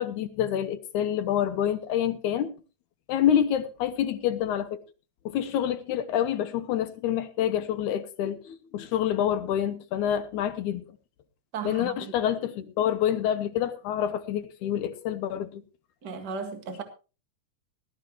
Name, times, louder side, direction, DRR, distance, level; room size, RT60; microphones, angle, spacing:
voice 1, 0.0-2.5 3.1-4.8 5.3-10.8 11.6-15.6, left 10 dB, 75° left, 2.2 m, -27 dB
voice 2, 11.5-12.1 16.0-16.8, right 5 dB, 40° right, 2.0 m, -35 dB
18.5 x 12.5 x 3.0 m
omnidirectional pair, 3.6 m